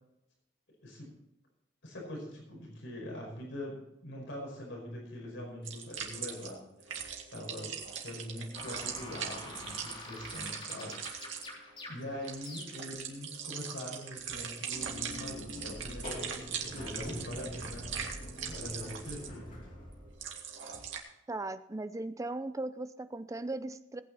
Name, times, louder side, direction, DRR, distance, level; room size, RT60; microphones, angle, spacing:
voice 1, 0.8-1.1 1.8-6.9 7.3-10.9 11.5-19.5, left 1 dB, 75° left, -2 dB, 5.2 m, -43 dB
sound 1, 5.6-21.0, right 7 dB, 85° right, 2.2 m, -41 dB
sound 2, 8.5-13.0, left 2 dB, 30° left, 3.5 m, -46 dB
sound 3, 14.7-20.3, left 1 dB, 45° left, 3.3 m, -44 dB
voice 2, 21.3-24.0, right 2 dB, 15° right, 11 dB, 0.6 m, -38 dB
19.0 x 9.0 x 4.2 m, 0.84 s
head